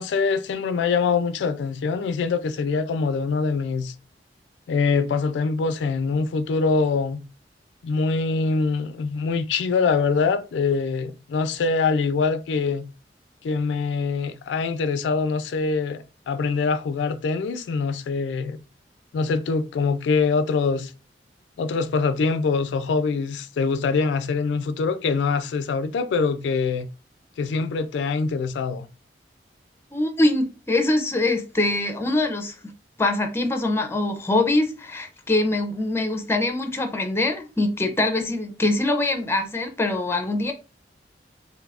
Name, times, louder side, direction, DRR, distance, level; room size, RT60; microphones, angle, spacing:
voice 1, 0.0-3.9 4.7-7.2 7.8-12.8 13.4-18.6 19.1-20.9 21.6-26.9 27.4-28.9, left 4 dB, 80° left, 0.3 m, -24 dB
voice 2, 29.9-32.5 33.0-40.5, left 2 dB, 15° left, 0.5 m, -23 dB
2.6 x 2.4 x 3.3 m
head